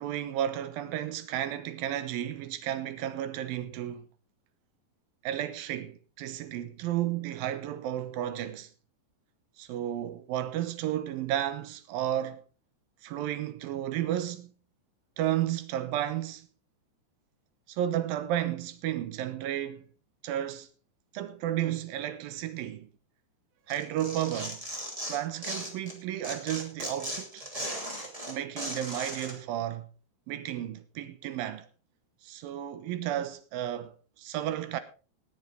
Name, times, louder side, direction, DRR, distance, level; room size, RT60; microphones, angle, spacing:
voice 1, 0.0-4.1 5.2-8.7 9.6-12.4 13.0-14.5 15.2-16.5 17.7-19.9 20.2-20.7 21.1-22.9 23.7-24.6 25.1-27.4 28.3-29.9 30.3-31.7 32.2-34.8, right 12 dB, 70° right, 2.4 m, -33 dB
Tearing, 23.7-25.9 26.2-29.3, equal, 10° right, 1.7 m, -37 dB
19.5 x 7.7 x 3.9 m
omnidirectional pair, 5.0 m